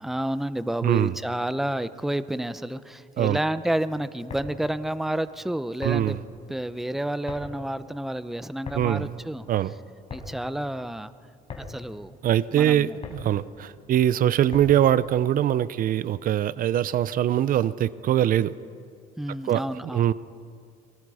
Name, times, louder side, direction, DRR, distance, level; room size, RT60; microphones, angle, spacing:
voice 1, 0.0-6.2 6.5-9.5 10.1-11.1 11.6-12.2 12.5-13.0 19.2-20.1, right 1 dB, ahead, 13 dB, 0.7 m, -30 dB
voice 2, 0.8-1.1 3.2-3.4 5.8-6.2 8.7-9.1 9.5-9.7 12.2-18.5 19.4-19.6 19.9-20.1, right 11 dB, 55° right, 17 dB, 0.6 m, -22 dB
sound 1, 4.1-15.0, left 3 dB, 40° left, 4.5 m, -42 dB
29.0 x 23.5 x 4.9 m, 2.3 s
cardioid pair, 110°, 17 cm